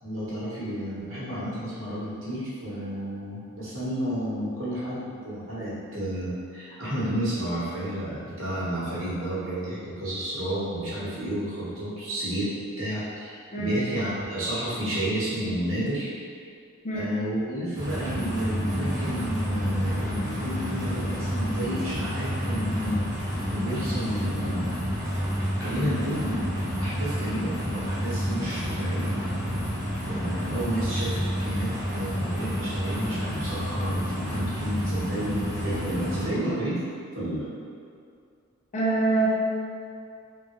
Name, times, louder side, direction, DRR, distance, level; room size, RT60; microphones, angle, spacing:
voice 1, 0.0-12.5 12.8-16.1 16.9-24.7 25.6-26.4 26.8-29.1 30.1-36.8 37.1-37.4, equal, 60° right, -9 dB, 1.0 m, -31 dB
sound 1, 17.7-36.3, equal, 15° right, 0.7 m, -29 dB
voice 2, 38.7-39.3, right 3 dB, 35° left, -5 dB, 0.4 m, -25 dB
3.3 x 2.2 x 2.9 m, 2.3 s
head